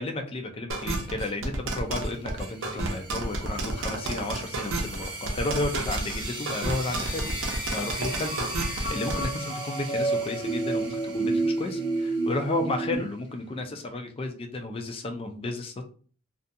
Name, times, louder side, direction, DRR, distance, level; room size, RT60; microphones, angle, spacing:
voice 1, 0.0-8.5 8.9-15.8, left 2 dB, 25° left, 5 dB, 0.4 m, -33 dB
sound 1, 0.7-9.2, right 2 dB, 65° right, 0.6 m, -31 dB
sound 2, 1.9-13.1, right 3 dB, 20° right, 0.6 m, -40 dB
sound 3, 4.8-12.9, right 2 dB, 45° left, 0.8 m, -31 dB
2.4 x 2.2 x 2.6 m, 0.42 s
head